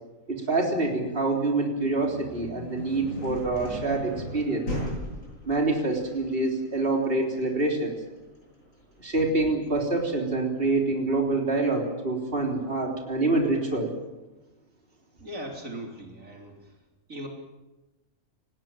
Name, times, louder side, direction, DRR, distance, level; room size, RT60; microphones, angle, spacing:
voice 1, 0.3-4.7 5.4-7.9 9.0-14.0, right 2 dB, 45° right, 1 dB, 4.0 m, -26 dB
sound 1, 1.8-11.6, equal, 80° left, 8.7 m, -39 dB
voice 2, 15.2-16.7 17.1-17.3, right 1 dB, 80° right, 1 dB, 4.2 m, -39 dB
29.0 x 19.5 x 7.6 m, 1.1 s
omnidirectional pair, 1.4 m